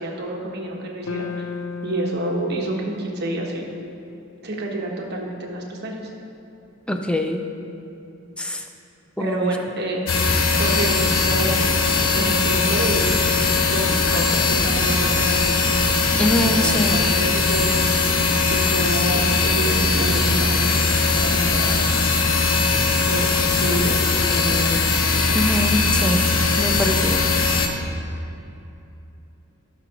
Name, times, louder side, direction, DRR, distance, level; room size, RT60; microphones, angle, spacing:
voice 1, 0.0-1.5 1.8-3.7 4.4-6.0 9.2-10.0 10.5-13.2 13.7-16.0 16.4-18.2 18.5-21.8 23.1-24.0 24.3-24.8, right 1 dB, 50° right, -1 dB, 1.3 m, -28 dB
sound 1, 1.0-5.4, left 4 dB, 65° left, 0.5 m, -36 dB
voice 2, 6.9-7.4 8.4-8.6 9.2-9.6 16.2-17.0 25.3-26.3 26.6-27.3, left 1 dB, 5° left, 4 dB, 0.5 m, -23 dB
sound 2, 10.1-27.7, left 4 dB, 80° left, 0.8 m, -20 dB
15.5 x 5.9 x 3.0 m, 2.8 s
head